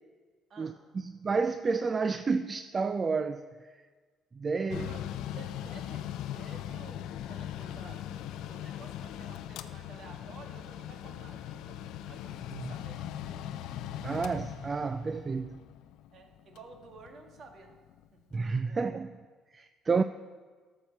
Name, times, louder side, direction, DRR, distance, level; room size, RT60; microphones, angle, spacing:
voice 1, 0.6-3.7 4.3-4.9 12.6-12.7 14.0-15.6 18.3-19.1 19.5-20.0, right 4 dB, 35° right, 0.4 m, -30 dB
Mechanical fan, 4.7-18.0, left 11 dB, 80° left, 0.5 m, -40 dB
voice 2, 4.8-5.1 5.3-6.1 6.4-13.4 16.1-17.8 18.1-18.2 18.6-18.9, right 4 dB, 55° right, 1.9 m, -52 dB
13.0 x 6.6 x 6.0 m
cardioid pair, 85°, 0 cm